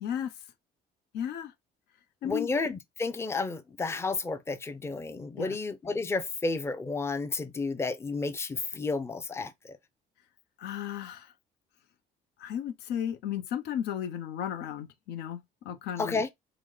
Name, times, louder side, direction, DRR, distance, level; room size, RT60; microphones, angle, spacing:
voice 1, 0.0-0.3 1.1-1.5 2.2-2.5 5.4-5.6 10.6-11.3 12.4-16.2, left 9 dB, 85° left, 0.7 m, -34 dB
voice 2, 2.2-9.7 16.0-16.3, left 3 dB, 15° left, 0.5 m, -32 dB
4.8 x 2.1 x 3.7 m
cardioid pair, 110°, 17 cm